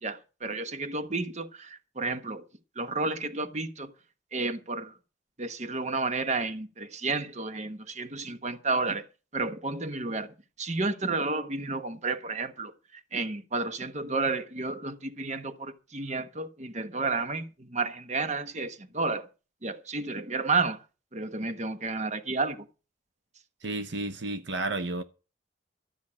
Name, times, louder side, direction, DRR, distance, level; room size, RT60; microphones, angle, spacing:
voice 1, 0.0-2.4 2.8-3.9 4.3-4.9 5.4-9.1 9.3-12.7 13.1-19.3 19.6-20.8 21.1-22.6, right 3 dB, 35° right, 1.1 m, -31 dB
voice 2, 23.6-25.0, right 2 dB, 65° right, 0.8 m, -32 dB
13.0 x 6.2 x 8.6 m
head